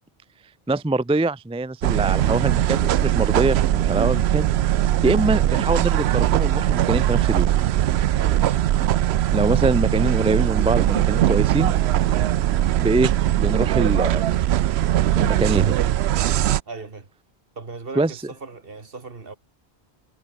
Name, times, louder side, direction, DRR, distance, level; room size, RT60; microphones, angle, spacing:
voice 1, 0.7-4.5 5.0-7.5 9.3-11.7 12.8-13.1 13.4-14.3 15.1-15.8 18.0-18.1, right 2 dB, 10° right, 0.3 m, -23 dB
sound 1, 1.8-16.6, right 12 dB, 80° right, 0.8 m, -20 dB
voice 2, 8.1-8.5 16.7-17.1 17.6-19.4, right 4 dB, 60° right, 2.2 m, -38 dB
omnidirectional pair, 1.1 m